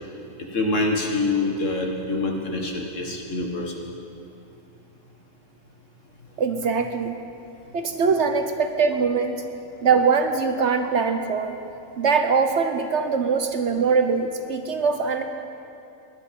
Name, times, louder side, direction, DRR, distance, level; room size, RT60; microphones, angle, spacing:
voice 1, 0.5-3.8, left 2 dB, 60° left, 0 dB, 2.0 m, -25 dB
voice 2, 6.4-7.2 7.7-9.4 9.8-11.6 12.0-15.2, right 5 dB, 60° right, 6 dB, 1.0 m, -22 dB
18.5 x 11.0 x 5.3 m, 2.7 s
omnidirectional pair, 1.5 m